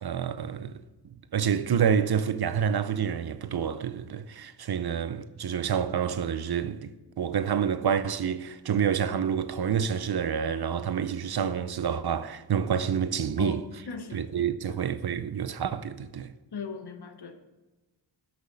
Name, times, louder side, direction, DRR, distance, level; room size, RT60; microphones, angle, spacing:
voice 1, 0.0-0.8 1.3-13.6 14.1-16.3, right 8 dB, 55° right, 0.6 m, -28 dB
voice 2, 13.9-14.2 14.6-14.8 16.5-17.5, left 6 dB, 60° left, 1.0 m, -38 dB
13.0 x 6.2 x 4.0 m
wide cardioid pair, 130°, 46 cm